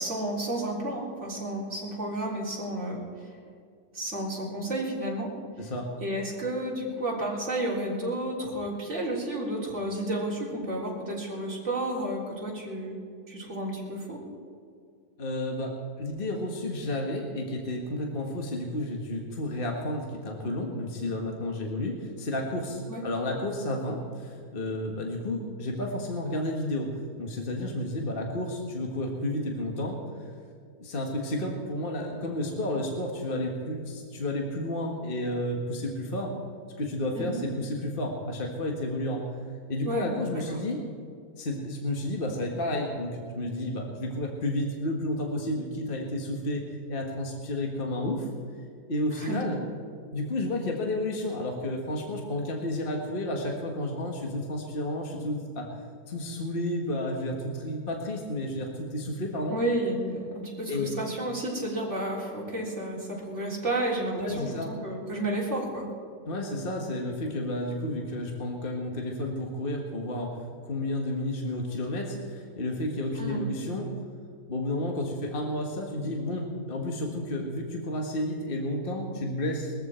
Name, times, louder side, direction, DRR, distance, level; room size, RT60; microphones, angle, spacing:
voice 1, 0.0-3.0 3.9-5.3 6.0-13.0 13.3-14.2 22.9-23.0 37.1-37.4 39.8-40.1 40.5-40.6 49.2-49.4 59.5-65.9 73.2-73.4, right 1 dB, 50° right, -4 dB, 4.1 m, -31 dB
voice 2, 5.6-5.9 15.2-30.0 30.8-36.4 36.8-39.2 39.7-40.8 41.4-48.3 48.9-49.6 50.1-55.8 56.1-59.6 60.7-60.9 64.1-64.7 66.3-70.4 70.6-73.9 74.5-79.7, left 1 dB, 35° left, 1 dB, 1.8 m, -31 dB
21.0 x 14.5 x 4.5 m, 2.3 s
omnidirectional pair, 1.6 m